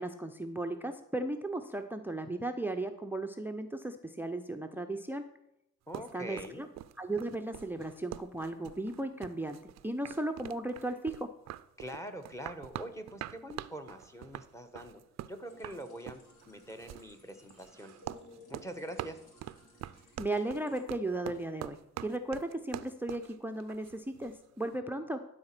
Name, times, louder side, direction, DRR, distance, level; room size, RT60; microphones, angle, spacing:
voice 1, 0.0-5.3 6.1-6.7 7.0-9.6 9.8-11.3 20.2-25.2, right 2 dB, 5° right, 8 dB, 0.6 m, -36 dB
voice 2, 5.9-6.6 11.8-15.0 15.3-17.9 18.5-19.2, right 1 dB, 10° left, 8 dB, 1.1 m, -44 dB
sound 1, 5.9-24.4, right 13 dB, 60° right, 0.4 m, -45 dB
sound 2, 15.4-20.8, left 2 dB, 85° left, 2.9 m, -58 dB
12.0 x 4.2 x 6.0 m, 0.81 s
cardioid pair, 90°, 30 cm